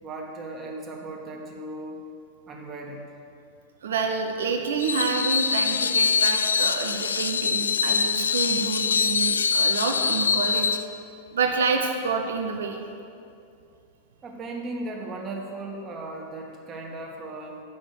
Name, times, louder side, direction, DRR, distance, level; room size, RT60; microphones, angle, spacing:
voice 1, 0.0-2.1 2.5-3.1 14.2-17.6, right 2 dB, 25° right, -1 dB, 1.6 m, -36 dB
voice 2, 3.8-10.8 11.3-12.8, right 5 dB, 70° right, 3 dB, 0.7 m, -28 dB
Screech, 4.8-10.8, left 5 dB, 75° left, 0.3 m, -24 dB
8.5 x 6.1 x 7.0 m, 2.5 s
figure-of-eight pair, 90°, 0 cm